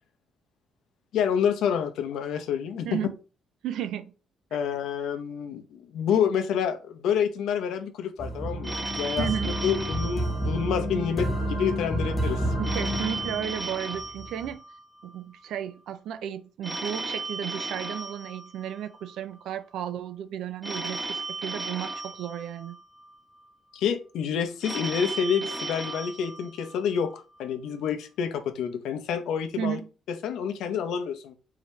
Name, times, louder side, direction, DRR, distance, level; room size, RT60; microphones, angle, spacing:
voice 1, 1.1-3.0 4.5-9.3 9.6-12.5 23.7-29.8 30.1-31.3, left 7 dB, 80° left, 0.7 m, -28 dB
voice 2, 3.6-4.1 9.2-9.5 12.6-14.6 15.0-22.8 29.6-29.9, right 10 dB, 75° right, 0.4 m, -33 dB
sound 1, 8.2-14.5, equal, 20° left, 0.9 m, -30 dB
Telephone, 8.6-11.1 12.6-15.1 16.6-19.1 20.6-23.1 24.6-27.1, right 3 dB, 5° right, 0.4 m, -36 dB
4.8 x 2.8 x 3.2 m
cardioid pair, 150°, 0 cm